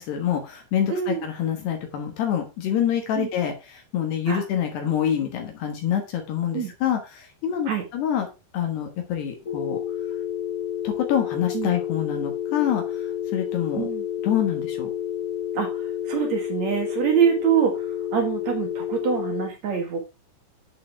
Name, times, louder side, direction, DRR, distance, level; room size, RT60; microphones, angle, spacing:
voice 1, 0.0-8.3 8.5-9.8 10.8-13.9 14.2-14.9, left 9 dB, 65° left, 4 dB, 3.3 m, -26 dB
voice 2, 0.9-1.2 3.1-3.3 4.3-4.4 6.5-6.7 7.7-7.8 11.5-11.7 13.8-14.0 15.5-20.0, right 8 dB, 60° right, 4 dB, 1.9 m, -25 dB
sound 1, 9.4-19.5, left 10 dB, 25° left, 2.0 m, -30 dB
9.1 x 8.7 x 3.4 m, 0.27 s
omnidirectional pair, 5.4 m